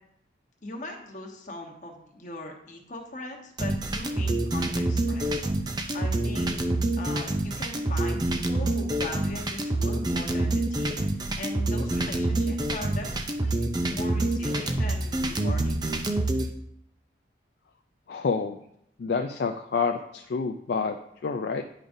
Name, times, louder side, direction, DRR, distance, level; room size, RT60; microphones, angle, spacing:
voice 1, 0.6-5.4 5.9-6.6 7.0-11.0 11.3-15.8, left 2 dB, 45° left, 1 dB, 1.1 m, -40 dB
sound 1, 3.6-16.5, right 2 dB, 20° right, 0.5 m, -27 dB
voice 2, 18.1-18.6 19.0-21.6, left 5 dB, 60° left, 6 dB, 0.4 m, -28 dB
10.0 x 5.0 x 2.6 m, 0.75 s
head